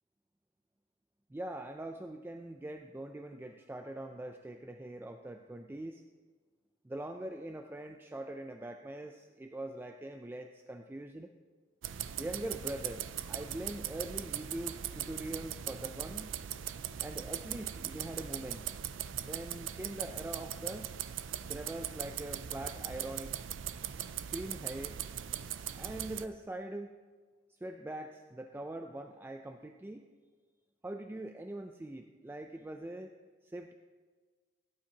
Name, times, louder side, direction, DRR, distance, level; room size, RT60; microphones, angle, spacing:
voice 1, 1.3-6.0 6.8-11.3 12.2-16.3 17.0-18.7 19.1-20.9 21.5-23.3 24.3-25.0 25.7-27.0 27.6-30.1 30.8-33.2 33.4-33.7, right 1 dB, 10° right, 5 dB, 0.3 m, -42 dB
sound 1, 11.8-26.3, right 10 dB, 85° right, 0.4 m, -40 dB
16.0 x 8.7 x 2.9 m, 1.4 s
head